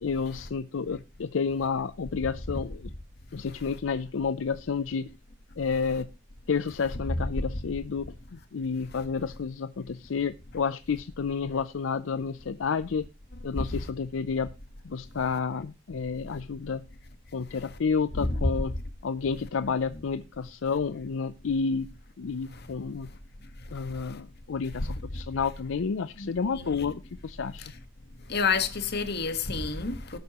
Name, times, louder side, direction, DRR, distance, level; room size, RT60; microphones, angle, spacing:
voice 1, 0.0-2.9 3.3-5.1 5.6-6.1 6.5-13.0 13.4-14.5 14.8-16.8 17.3-18.8 19.0-21.9 22.2-23.1 23.7-27.6, left 5 dB, 75° left, 0.5 m, -30 dB
voice 2, 26.2-26.9 28.3-30.2, left 4 dB, 55° left, 1.5 m, -29 dB
18.5 x 8.2 x 3.0 m
head